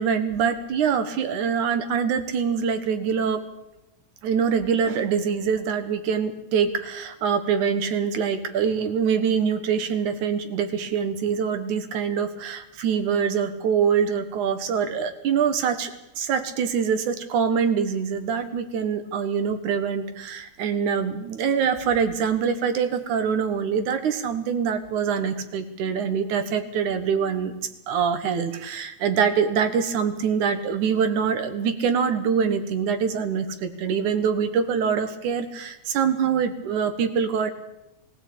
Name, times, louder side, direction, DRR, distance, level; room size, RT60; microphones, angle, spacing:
voice 1, 0.0-3.4 4.2-27.6 27.9-37.5, right 7 dB, 90° right, 9 dB, 3.0 m, -24 dB
22.5 x 16.0 x 8.6 m, 0.92 s
omnidirectional pair, 3.3 m